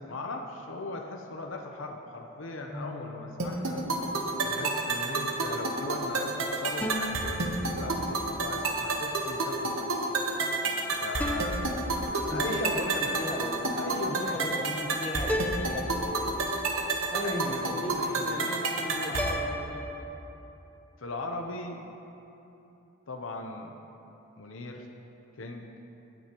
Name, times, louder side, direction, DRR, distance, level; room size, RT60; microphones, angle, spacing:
voice 1, 0.1-3.8 4.4-9.9 10.9-13.2 13.8-14.5 17.2-18.5 18.9-19.3 21.0-21.8 23.1-23.7 24.4-24.9 25.4-25.7, left 2 dB, 75° left, 2 dB, 0.7 m, -38 dB
sound 1, 2.7-4.4 6.8-8.5 11.2-12.7 15.3-16.9 19.2-20.1, left 1 dB, 10° left, 0.6 m, -37 dB
sound 2, 3.4-19.4, right 2 dB, 85° right, 1.1 m, -30 dB
voice 2, 12.3-12.9 13.2-13.8 14.0-16.2 17.1-18.0 18.2-19.9, left 1 dB, 30° left, -1 dB, 1.1 m, -37 dB
17.5 x 9.0 x 3.0 m, 3.0 s
head